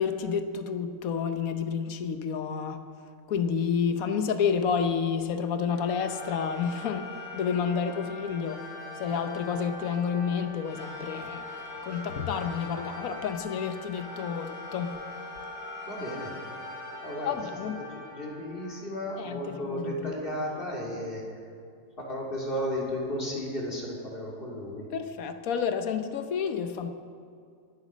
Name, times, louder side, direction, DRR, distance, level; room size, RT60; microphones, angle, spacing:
voice 1, 0.0-2.8 3.3-7.1 7.3-8.6 9.0-15.0 17.2-17.9 19.2-20.1 24.9-26.9, left 6 dB, 80° left, 1.3 m, -30 dB
sound 1, 5.7-19.5, left 2 dB, 60° left, 5.2 m, -42 dB
voice 2, 15.8-16.3 17.0-17.4 17.8-21.4 22.0-24.9, equal, 40° left, 2.9 m, -34 dB
22.5 x 8.2 x 6.2 m
omnidirectional pair, 1.5 m